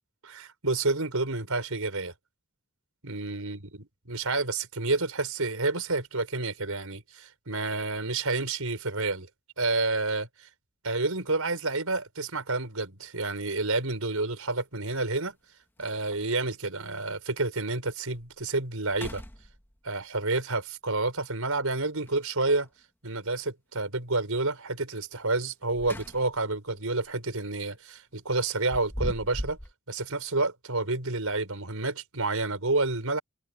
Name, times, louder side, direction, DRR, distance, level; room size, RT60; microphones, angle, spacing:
voice 1, 0.2-2.1 3.0-3.6 4.1-9.3 9.6-10.5 10.8-15.4 15.8-19.2 19.8-22.7 23.0-29.6 29.9-33.2, right 3 dB, 90° right, 5.2 m, -29 dB
sound 1, 13.1-13.2 14.9-15.0 15.4-15.5 15.8-16.4 16.9-17.0 17.6-17.7 18.1-18.4 18.8-19.9 22.0-22.7 25.4-26.5 26.9-27.1 28.4-29.7, equal, 10° left, 2.1 m, -39 dB
head